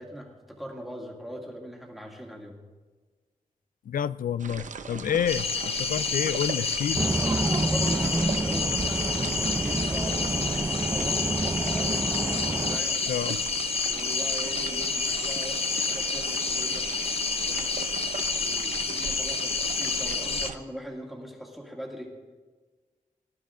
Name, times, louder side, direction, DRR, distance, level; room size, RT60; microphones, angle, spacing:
voice 1, 0.0-2.6 7.3-10.3 10.7-12.1 12.7-13.0 13.8-15.6 15.9-16.9 17.5-17.8 18.4-22.1, equal, ahead, 2.1 m, -40 dB
voice 2, 3.9-7.1 13.1-13.4, left 9 dB, 85° left, 0.4 m, -29 dB
sound 1, 4.4-20.6, right 6 dB, 65° right, 0.7 m, -39 dB
sound 2, 5.3-20.5, left 4 dB, 45° left, 0.7 m, -29 dB
sound 3, 6.9-12.8, right 2 dB, 15° right, 0.4 m, -28 dB
19.0 x 11.5 x 3.7 m
wide cardioid pair, 130°, 14 cm